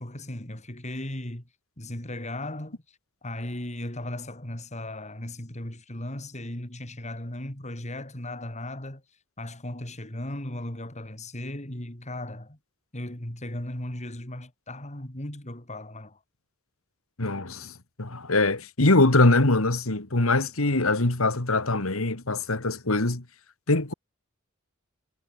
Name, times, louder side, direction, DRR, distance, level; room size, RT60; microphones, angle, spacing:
voice 1, 0.0-1.5 1.8-9.0 9.4-12.6 12.9-16.2, left 1 dB, 35° left, 3.7 m, -37 dB
voice 2, 17.2-17.7 18.0-23.2 23.7-23.9, left 2 dB, 80° left, 2.4 m, -23 dB
head